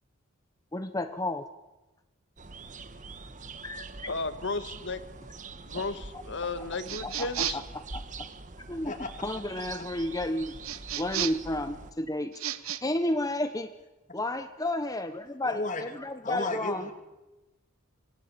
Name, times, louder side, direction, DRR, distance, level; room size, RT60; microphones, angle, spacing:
voice 1, 0.7-1.4 3.6-3.8 7.0-7.6 7.9-8.0 8.7-8.9 9.2-10.5 11.0-12.3 12.6-13.7 14.1-16.8, left 1 dB, 15° left, 9 dB, 1.0 m, -31 dB
sound 1, 2.4-11.9, right 3 dB, 35° right, 1.4 m, -44 dB
voice 2, 4.1-5.0 5.6-7.6, left 3 dB, 55° left, 11 dB, 1.9 m, -34 dB
sound 2, 6.9-7.7 10.6-11.5 12.3-12.8, right 10 dB, 80° right, 1.3 m, -33 dB
voice 3, 8.8-9.2 9.5-9.9 15.4-15.8 16.2-16.9, left 2 dB, 35° left, 5 dB, 3.0 m, -34 dB
27.0 x 20.5 x 8.6 m, 1.1 s
head